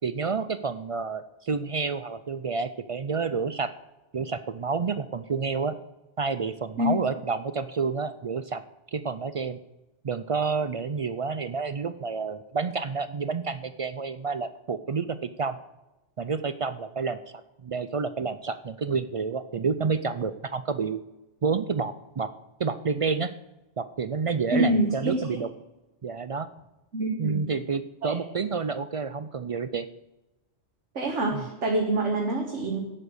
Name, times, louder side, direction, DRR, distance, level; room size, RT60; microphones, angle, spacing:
voice 1, 0.0-3.7 4.1-5.7 6.2-8.6 8.9-9.6 10.0-15.6 16.2-17.2 17.6-21.0 21.4-22.3 22.6-23.3 23.8-25.5 26.0-26.5 27.2-29.9 31.3-31.5, right 5 dB, 60° right, 13 dB, 0.3 m, -29 dB
voice 2, 24.5-25.4 26.9-27.4 28.0-28.2 31.0-32.8, right 1 dB, 85° right, 0 dB, 1.8 m, -26 dB
11.0 x 7.8 x 6.4 m, 1.0 s
omnidirectional pair, 1.2 m